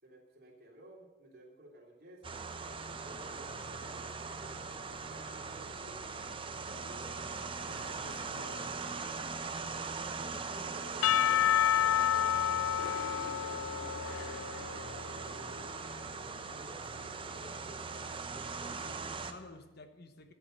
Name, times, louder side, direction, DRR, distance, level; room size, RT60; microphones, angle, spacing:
voice 1, 0.0-2.4 2.7-14.2 14.8-18.1, right 1 dB, 45° right, -1 dB, 3.2 m, -56 dB
sound 1, 2.2-19.3, right 4 dB, 25° right, 0.8 m, -40 dB
voice 2, 7.6-8.7 18.6-20.3, left 2 dB, 50° left, 8 dB, 1.0 m, -52 dB
Percussion / Church bell, 11.0-15.2, left 11 dB, 75° left, 0.4 m, -29 dB
14.0 x 8.7 x 6.6 m, 1.4 s
head